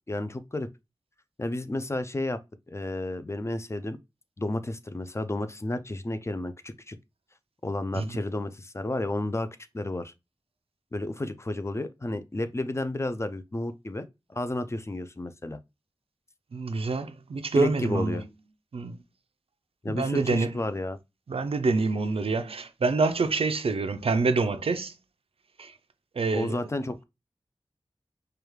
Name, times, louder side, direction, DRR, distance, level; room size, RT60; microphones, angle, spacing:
voice 1, 0.1-0.7 1.4-2.4 2.7-4.0 4.4-7.0 7.6-9.5 9.7-10.1 10.9-15.6 17.6-18.2 19.8-21.0 26.3-27.0, left 2 dB, 30° left, 0.5 m, -31 dB
voice 2, 16.5-18.2 18.7-19.0 19.9-20.6 21.3-24.9 25.6-25.8 26.1-26.6, right 3 dB, 80° right, 0.5 m, -26 dB
4.9 x 2.3 x 3.1 m
wide cardioid pair, 80°, 10 cm